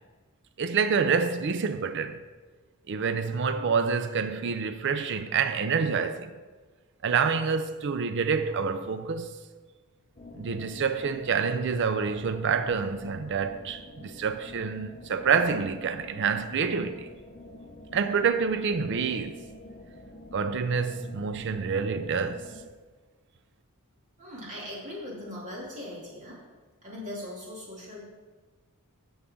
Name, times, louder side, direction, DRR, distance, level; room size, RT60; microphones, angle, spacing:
voice 1, 0.6-2.2 2.9-6.3 7.0-9.4 10.4-17.1 17.9-19.4 20.3-22.5, right 5 dB, 55° right, 0.4 m, -27 dB
sound 1, 10.2-22.7, left 1 dB, 30° left, 0.9 m, -47 dB
voice 2, 24.2-26.4 26.8-28.0, left 1 dB, 35° right, 2.9 m, -39 dB
15.5 x 5.5 x 3.8 m
head